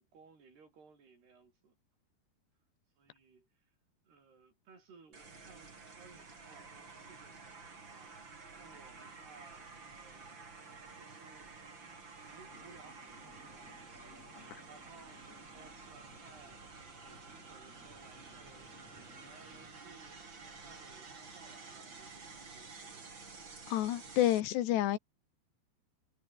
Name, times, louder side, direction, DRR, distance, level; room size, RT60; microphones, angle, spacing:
voice 1, 0.0-1.7 3.0-3.7 4.0-11.7 12.2-23.2, right 5 dB, 70° right, 8.5 m, -61 dB
sound 1, 5.1-24.4, right 4 dB, 30° right, 4.0 m, -51 dB
sound 2, 12.5-19.7, left 4 dB, 40° left, 6.2 m, -61 dB
voice 2, 23.7-25.0, left 13 dB, 85° left, 3.6 m, -29 dB
omnidirectional pair, 4.8 m